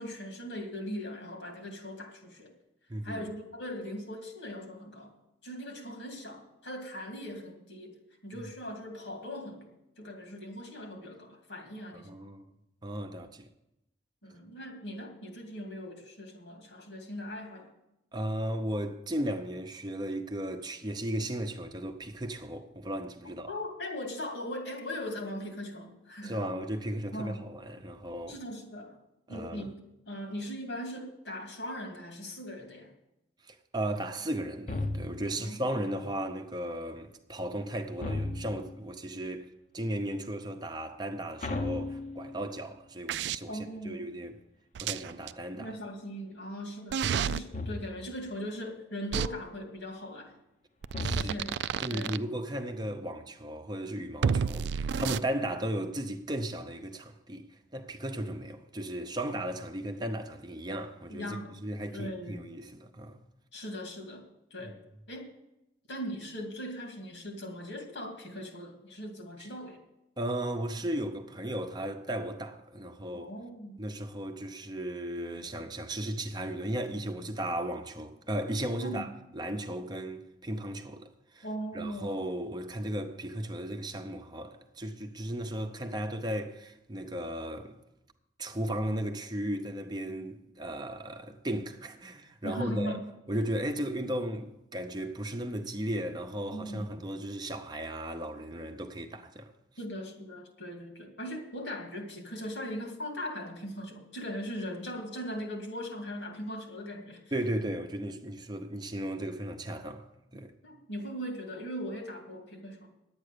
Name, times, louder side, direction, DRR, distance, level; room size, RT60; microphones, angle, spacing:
voice 1, 0.0-2.5 3.0-5.1 5.4-9.7 10.0-12.1 14.2-17.7 23.5-26.4 27.1-27.4 28.3-29.0 29.3-29.7 30.1-32.9 35.4-35.8 43.5-44.0 45.5-50.4 51.1-51.6 51.9-52.1 61.1-61.6 61.9-62.5 63.5-64.2 64.5-64.7 65.1-65.3 65.9-69.8 73.1-73.8 78.8-79.1 81.4-82.2 92.4-93.1 96.5-96.8 99.8-107.2 110.6-112.9, equal, 85° left, 2.5 m, -39 dB
voice 2, 2.9-3.3 8.4-8.5 11.9-12.5 12.8-13.5 18.1-23.5 26.2-28.4 29.3-29.7 33.4-44.4 44.8-45.8 51.0-51.4 51.8-63.2 64.6-64.7 69.4-69.5 70.2-73.3 73.8-81.5 81.7-87.8 88.4-93.0 93.3-99.5 107.3-110.1 110.3-110.5, right 1 dB, 25° right, 0.7 m, -36 dB
sound 1, 34.7-35.4 38.0-38.8 41.4-42.6 47.5-48.2 50.9-51.7, left 2 dB, 40° left, 0.8 m, -35 dB
sound 2, 43.1-43.4 44.7-45.3 46.9-47.4 49.1-49.3 50.8-52.2 54.2-55.2, right 7 dB, 75° right, 0.3 m, -30 dB
10.5 x 8.8 x 6.7 m
head